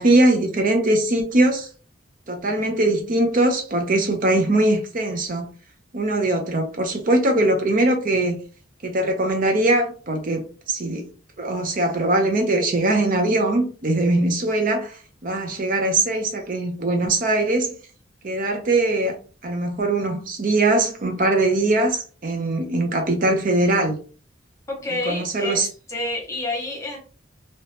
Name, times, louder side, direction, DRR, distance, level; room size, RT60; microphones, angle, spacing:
voice 1, 0.0-1.7 2.3-5.5 5.9-8.4 8.8-11.1 11.4-17.7 18.2-19.2 19.4-24.0 25.1-25.7, right 2 dB, 45° right, 0.5 m, -21 dB
voice 2, 24.7-27.0, left 2 dB, 15° left, 1.2 m, -29 dB
2.8 x 2.7 x 3.3 m
head